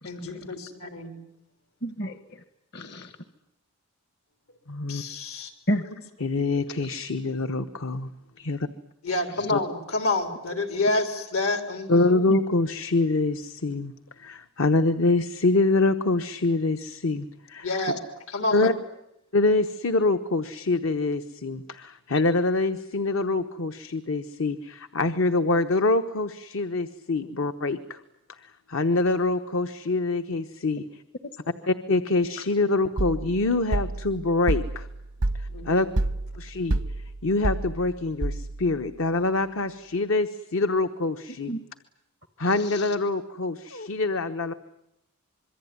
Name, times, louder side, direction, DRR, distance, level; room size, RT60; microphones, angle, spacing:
voice 1, 0.0-1.2 4.9-5.5 9.0-12.3 17.6-18.0 18.3-18.7 27.2-27.3 35.5-35.9, left 2 dB, 85° left, 6 dB, 4.0 m, -28 dB
voice 2, 1.8-2.4 2.7-3.1 5.7-5.9 9.4-9.5 12.3-12.4 41.5-41.6 42.4-42.9, equal, 50° left, 10 dB, 1.3 m, -30 dB
voice 3, 4.7-5.0 6.2-8.1 8.4-8.7 9.5-9.6 11.9-13.9 14.2-17.7 18.5-18.7 19.3-28.0 28.3-28.4 28.7-31.0 31.7-34.9 35.3-35.9 36.4-36.8 37.2-41.6 42.4-44.5, left 3 dB, 65° left, 9 dB, 1.0 m, -25 dB
sound 1, 33.0-38.8, right 2 dB, 85° right, 0.9 m, -29 dB
26.0 x 23.0 x 9.5 m, 0.84 s
head